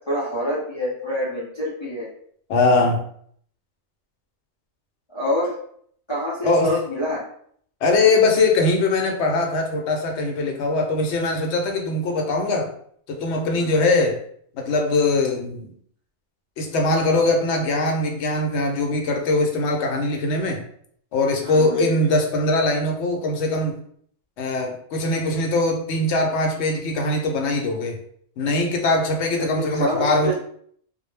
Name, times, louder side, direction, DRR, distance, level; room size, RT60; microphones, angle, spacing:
voice 1, 0.1-2.1 5.1-5.6 6.1-7.2 13.5-13.7 21.4-21.8 29.4-30.3, equal, 35° left, -7 dB, 0.5 m, -26 dB
voice 2, 2.5-3.0 6.4-6.8 7.8-12.7 13.1-14.2 14.5-15.7 16.6-20.6 21.1-23.8 24.4-28.0 28.4-30.3, left 2 dB, 75° left, 2 dB, 0.9 m, -21 dB
2.1 x 2.1 x 3.2 m, 0.63 s
omnidirectional pair, 1.2 m